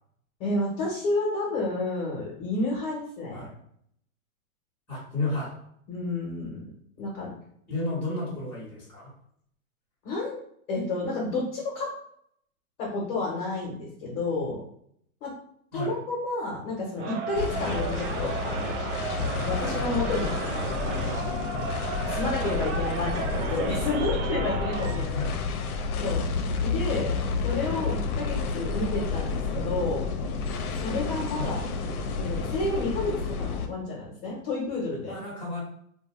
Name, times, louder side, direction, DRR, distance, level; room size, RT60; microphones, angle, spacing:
voice 1, 0.4-3.5 5.9-6.6 7.0-7.3 10.0-10.4 10.7-11.9 12.8-14.6 15.2-15.3 15.7-19.1 19.4-20.4 20.8-21.3 22.1-25.3 26.0-26.3 26.6-30.0 30.8-31.6 32.1-35.1, left 2 dB, 40° left, -4 dB, 0.8 m, -30 dB
voice 2, 4.9-5.5 7.7-9.1 15.7-15.9 25.1-25.4 31.4-31.5 35.1-35.6, left 2 dB, 5° left, -8 dB, 0.8 m, -32 dB
Crowd, 17.0-25.1, right 5 dB, 55° right, 0.5 m, -34 dB
sound 1, 17.4-33.7, left 4 dB, 75° left, 0.6 m, -30 dB
2.5 x 2.2 x 3.0 m, 0.69 s
hypercardioid pair, 145°, 44 cm